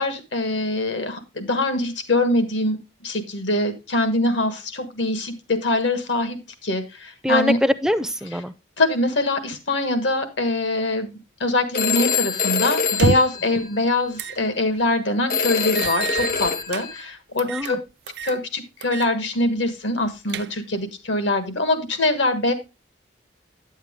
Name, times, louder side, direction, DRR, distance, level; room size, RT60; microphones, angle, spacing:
voice 1, 0.0-7.6 8.8-11.1 11.4-17.8 18.2-22.5, left 2 dB, 75° left, 9 dB, 1.5 m, -23 dB
voice 2, 7.2-8.5 17.5-17.8, equal, 5° right, 12 dB, 0.4 m, -23 dB
Telephone, 11.7-14.1 15.3-17.0, left 6 dB, 50° left, 0.7 m, -25 dB
sound 1, 12.9-13.5 14.2-14.4 14.8-14.9 15.8-16.9 17.4-17.7 18.1-18.4 18.8-19.1 19.4-19.5 20.0-20.8, right 5 dB, 60° right, 0.4 m, -27 dB
9.6 x 7.3 x 3.6 m, 0.27 s
head